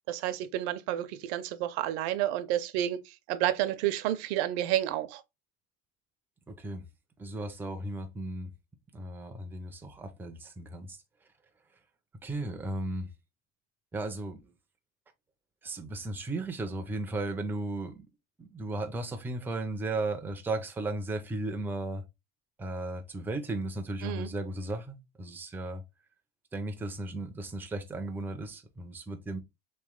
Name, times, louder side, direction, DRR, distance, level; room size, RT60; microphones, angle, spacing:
voice 1, 0.1-5.2 24.0-24.3, right 13 dB, 65° right, 0.6 m, -30 dB
voice 2, 6.5-6.9 7.2-8.5 8.9-11.0 12.2-13.1 13.9-14.5 15.6-18.1 18.4-22.0 22.6-25.8 26.5-29.4, right 2 dB, 5° right, 0.4 m, -35 dB
3.2 x 3.1 x 3.5 m
supercardioid pair, 135°, 36 cm